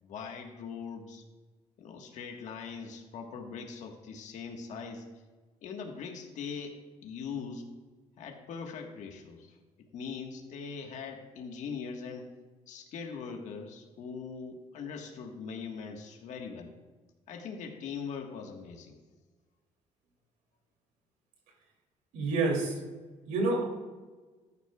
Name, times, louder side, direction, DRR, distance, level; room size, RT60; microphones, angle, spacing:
voice 1, 0.0-1.2 1.8-5.0 5.6-7.7 8.2-9.6 9.9-12.3 12.7-16.7 17.3-19.0, left 5 dB, 65° left, 2 dB, 1.5 m, -41 dB
voice 2, 22.1-22.7 23.3-23.6, right 3 dB, 80° right, 0 dB, 2.8 m, -28 dB
14.5 x 9.8 x 2.3 m, 1.3 s
cardioid pair, 100°, 13 cm